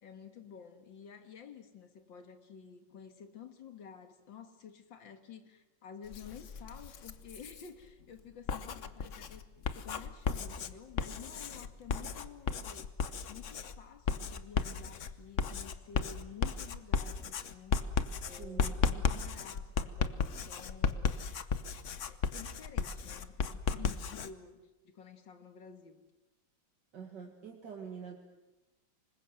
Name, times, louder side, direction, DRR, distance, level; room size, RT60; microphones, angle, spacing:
voice 1, 0.0-9.4 9.7-12.9 13.3-17.8 18.2-21.2 22.1-26.0, left 7 dB, 80° left, 8 dB, 2.4 m, -51 dB
Writing, 6.1-7.7 8.3-24.3, left 6 dB, 50° left, 1.1 m, -35 dB
voice 2, 18.2-18.8 26.9-28.2, right 6 dB, 70° right, 1 dB, 2.4 m, -45 dB
25.5 x 21.0 x 7.8 m, 1.0 s
omnidirectional pair, 2.0 m